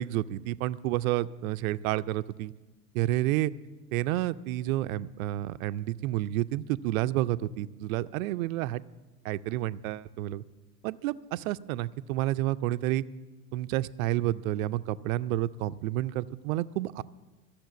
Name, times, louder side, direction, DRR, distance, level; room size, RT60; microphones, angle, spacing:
voice 1, 0.0-2.5 2.9-3.5 3.9-8.8 9.2-10.4 10.8-13.0 13.5-17.0, right 15 dB, 60° right, 15 dB, 0.6 m, -30 dB
13.5 x 7.3 x 9.3 m, 1.2 s
hypercardioid pair, 95°, 48 cm